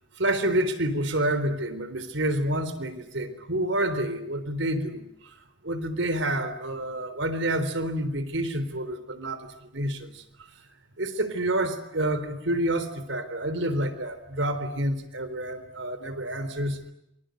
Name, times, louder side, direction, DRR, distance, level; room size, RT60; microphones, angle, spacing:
voice 1, 0.2-5.1 5.6-10.2 11.0-16.8, right 1 dB, 85° right, 11 dB, 4.0 m, -28 dB
28.0 x 25.5 x 8.0 m, 0.79 s
head